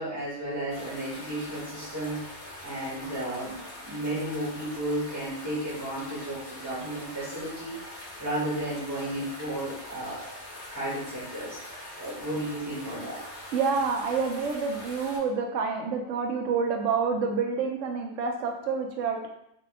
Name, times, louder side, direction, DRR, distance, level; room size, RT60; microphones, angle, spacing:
voice 1, 0.0-2.2 2.6-7.8 8.2-10.3 10.7-11.6 12.0-13.2, right 1 dB, 20° right, -8 dB, 0.7 m, -33 dB
sound 1, 0.7-15.2, left 1 dB, 40° left, 1.0 m, -43 dB
voice 2, 13.5-19.3, right 5 dB, 75° right, 2 dB, 0.9 m, -28 dB
2.7 x 2.3 x 3.3 m, 0.77 s
omnidirectional pair, 1.3 m